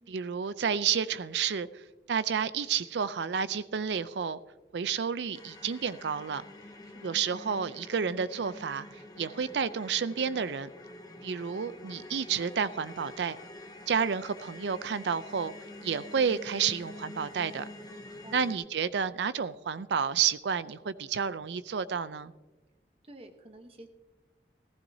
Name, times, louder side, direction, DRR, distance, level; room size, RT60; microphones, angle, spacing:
voice 1, 0.1-1.8 2.1-4.4 4.7-6.4 7.0-8.9 9.2-10.7 11.2-13.4 13.9-15.5 15.8-17.6 18.3-22.3, right 7 dB, 80° right, 16 dB, 0.5 m, -30 dB
sound 1, 5.3-18.6, left 2 dB, 20° left, 0.9 m, -47 dB
voice 2, 6.8-7.2 18.0-18.4 23.0-23.9, right 1 dB, 30° right, 6 dB, 1.0 m, -51 dB
15.0 x 14.5 x 2.7 m, 1.1 s
head